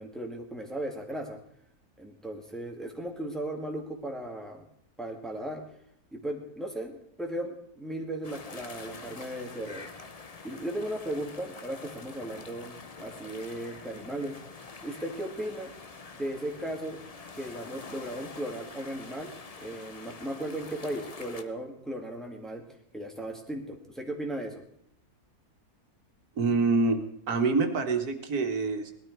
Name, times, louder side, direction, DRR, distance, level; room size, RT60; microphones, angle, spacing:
voice 1, 0.0-1.4 2.0-4.6 5.0-5.6 6.1-9.9 10.4-14.4 14.8-15.7 16.2-17.0 17.3-19.3 19.6-22.6 22.9-24.6, right 1 dB, ahead, 1 dB, 2.0 m, -36 dB
sound 1, 8.2-21.4, left 4 dB, 30° left, 0.8 m, -46 dB
voice 2, 26.4-28.9, right 3 dB, 80° right, 6 dB, 1.9 m, -26 dB
19.0 x 12.5 x 4.6 m, 0.70 s
omnidirectional pair, 1.6 m